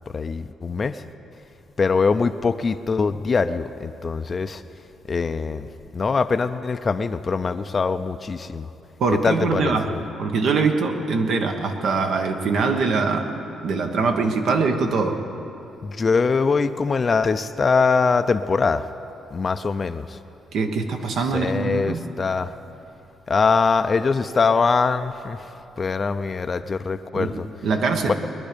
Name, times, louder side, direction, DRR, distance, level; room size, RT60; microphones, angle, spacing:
voice 1, 0.1-1.0 1.8-4.6 5.1-8.7 9.1-10.0 15.8-18.9 19.3-20.2 21.2-22.6 23.3-25.5 25.8-27.5 28.1-28.2, left 4 dB, 35° left, 10 dB, 0.5 m, -23 dB
voice 2, 9.0-9.9 10.2-15.2 20.5-22.0 27.1-27.3 27.6-28.1, right 4 dB, 70° right, 4 dB, 1.3 m, -23 dB
21.5 x 10.5 x 5.2 m, 2.9 s
cardioid pair, 90°, 0 cm